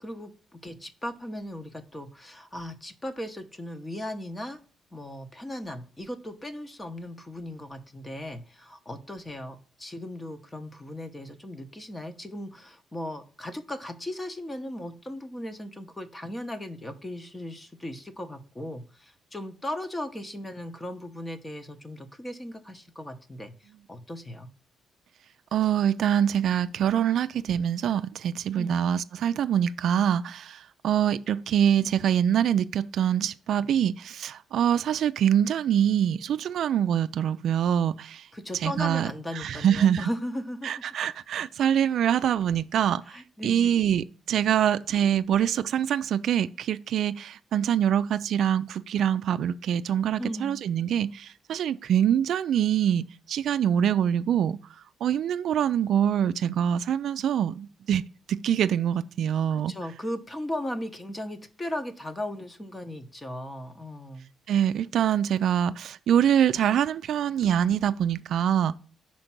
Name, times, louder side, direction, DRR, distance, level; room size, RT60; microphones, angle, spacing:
voice 1, 0.0-4.6 4.9-24.5 28.5-28.8 38.3-40.7 43.1-43.7 50.2-50.6 59.5-64.3, left 1 dB, 15° left, 0.9 m, -37 dB
voice 2, 25.5-38.3 38.6-39.1 39.4-40.1 40.6-54.6 55.0-58.0 58.3-59.7 64.5-68.7, right 9 dB, 65° right, 0.3 m, -25 dB
5.2 x 4.4 x 5.9 m
cardioid pair, 120°, 0 cm